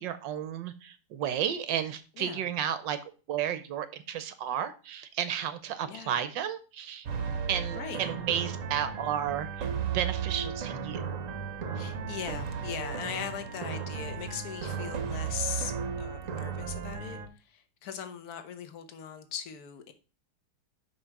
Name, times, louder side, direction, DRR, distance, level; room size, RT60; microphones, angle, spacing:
voice 1, 0.0-3.0 3.3-7.1 7.5-9.7 9.9-11.0, right 9 dB, 70° right, 1.2 m, -32 dB
voice 2, 5.9-6.2 7.7-8.1 11.7-17.2 17.5-19.9, left 8 dB, 55° left, 1.2 m, -39 dB
sound 1, 7.1-17.3, right 6 dB, 55° right, 0.9 m, -35 dB
5.7 x 5.4 x 5.8 m
omnidirectional pair, 2.4 m